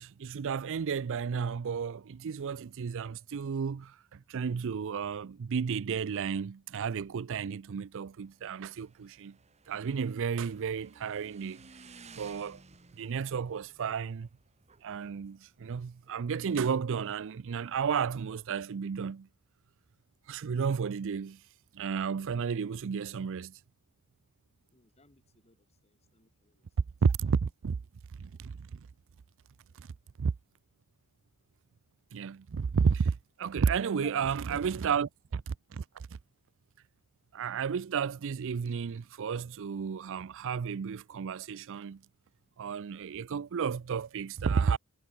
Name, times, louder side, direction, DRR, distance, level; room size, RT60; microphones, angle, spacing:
voice 1, 0.0-9.4 9.7-11.7 12.2-12.6 12.9-14.3 14.8-19.3 20.3-21.4 21.7-23.6 27.0-27.8 28.2-28.8 29.8-29.9 30.2-30.3 32.1-35.4 35.7-36.1 37.3-42.0 42.6-44.8, right 6 dB, 60° right, 0.4 m, -32 dB
Motorcycle / Engine, 8.1-17.3, right 4 dB, 30° right, 1.1 m, -57 dB
voice 2, 24.7-26.6 33.9-35.0, left 2 dB, 30° left, 2.2 m, -56 dB
head